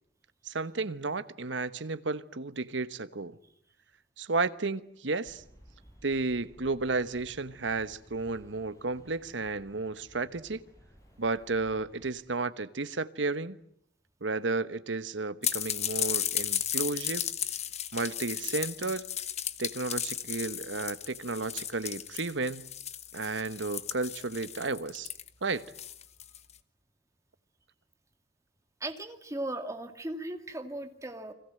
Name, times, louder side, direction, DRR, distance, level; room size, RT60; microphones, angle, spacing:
voice 1, 0.4-3.4 4.2-5.4 6.0-10.6 11.2-13.6 14.2-17.2 17.9-19.0 19.6-22.7 23.1-25.1 25.4-25.7, right 3 dB, 90° right, 1.2 m, -32 dB
sound 1, 5.2-12.2, equal, 20° left, 7.4 m, -57 dB
sound 2, 15.4-26.5, left 10 dB, 35° left, 1.1 m, -35 dB
voice 2, 28.8-31.3, right 1 dB, 15° right, 2.3 m, -37 dB
29.5 x 22.0 x 7.8 m
head